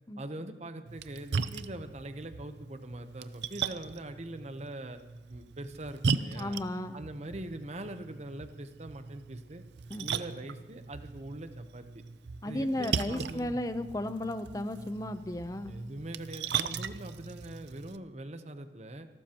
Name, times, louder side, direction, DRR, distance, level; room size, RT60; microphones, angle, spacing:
voice 1, 0.2-5.0 5.3-6.6 6.9-9.6 10.0-12.0 12.4-13.6 15.7-19.1, right 1 dB, 40° right, 8 dB, 0.9 m, -42 dB
Splash splatter, 0.9-18.0, right 5 dB, 70° right, 0.5 m, -38 dB
voice 2, 6.4-7.0 9.9-10.1 12.4-15.7, left 1 dB, 20° left, 10 dB, 0.6 m, -34 dB
27.5 x 12.5 x 3.0 m, 1.2 s
head